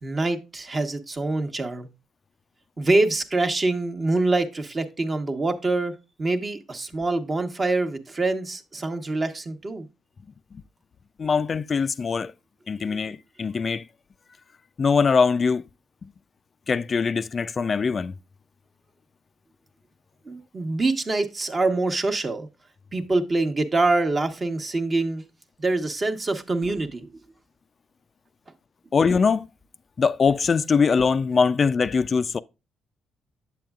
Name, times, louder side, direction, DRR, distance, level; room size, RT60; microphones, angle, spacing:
voice 1, 0.0-1.9 2.8-9.9 12.8-13.0 20.2-22.5 22.9-25.2 25.6-27.1, right 2 dB, 35° right, 1.0 m, -25 dB
voice 2, 11.2-12.3 12.7-13.8 14.8-15.6 16.7-18.1 28.9-29.5 30.0-32.4, left 5 dB, 40° left, 0.3 m, -22 dB
8.0 x 7.5 x 2.3 m
cardioid pair, 90°, 0 cm